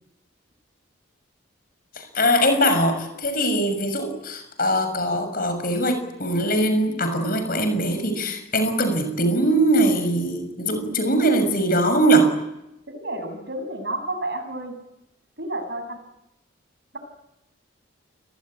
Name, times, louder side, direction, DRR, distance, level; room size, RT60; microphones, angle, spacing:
voice 1, 2.0-12.3, right 1 dB, 45° left, 8 dB, 6.8 m, -21 dB
voice 2, 12.9-14.7 15.4-16.0, right 1 dB, 55° right, 7 dB, 6.8 m, -30 dB
29.0 x 20.0 x 9.1 m, 0.89 s
head